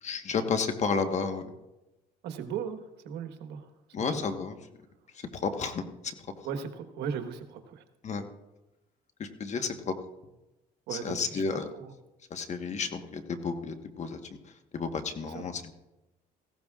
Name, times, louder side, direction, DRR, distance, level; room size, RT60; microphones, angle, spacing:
voice 1, 0.0-1.5 3.9-4.6 5.3-5.8 8.0-8.2 9.2-9.9 10.9-11.7 12.3-14.2 14.7-15.7, left 5 dB, 45° left, 7 dB, 1.3 m, -31 dB
voice 2, 2.2-3.7 4.0-4.2 6.4-7.8 10.9-11.4 11.7-11.9 15.2-15.4, right 7 dB, 85° right, 7 dB, 1.3 m, -37 dB
18.0 x 15.5 x 2.4 m, 1.0 s
cardioid pair, 110°, 17 cm